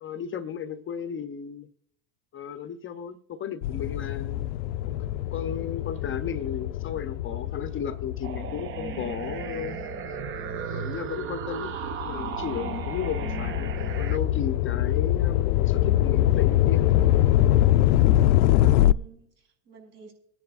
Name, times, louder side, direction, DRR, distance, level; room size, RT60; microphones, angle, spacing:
voice 1, 0.0-1.7 2.3-4.5 4.9-9.8 10.7-17.0 17.4-17.6, left 8 dB, 25° left, 0.6 m, -35 dB
sound 1, 3.6-10.4 10.9-18.9, left 13 dB, 85° left, 0.6 m, -24 dB
sound 2, 8.2-14.2, right 8 dB, 25° right, 0.4 m, -35 dB
voice 2, 13.2-13.7 15.1-15.2 15.5-15.8 18.7-20.1, right 3 dB, 75° right, 6.3 m, -52 dB
25.0 x 10.5 x 2.4 m
supercardioid pair, 115°, 50 cm